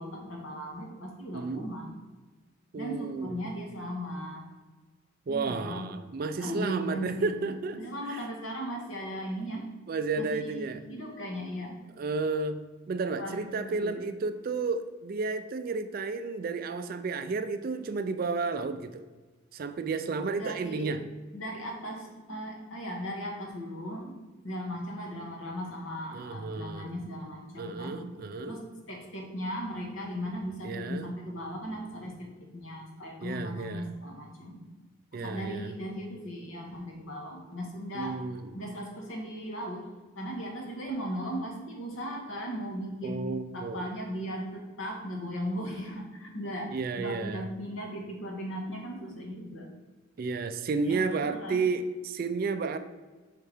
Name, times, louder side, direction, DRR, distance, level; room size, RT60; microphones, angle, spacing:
voice 1, 0.0-1.9 2.7-4.4 5.3-5.9 6.4-9.7 10.2-11.8 13.2-14.0 20.3-20.9 21.3-24.1 24.4-28.0 28.4-34.6 35.1-38.2 38.5-39.9 40.1-43.3 43.5-49.7 50.8-51.6, equal, 70° left, 0 dB, 1.3 m, -37 dB
voice 2, 1.3-1.7 2.7-3.5 5.3-7.8 8.1-8.2 9.9-10.8 12.0-19.0 19.5-21.1 26.1-26.9 27.6-28.6 30.6-31.1 33.2-33.9 35.1-35.7 37.9-38.5 43.0-43.8 46.7-47.5 50.2-52.8, right 4 dB, 45° right, 10 dB, 0.3 m, -32 dB
5.6 x 3.6 x 4.8 m, 1.3 s
head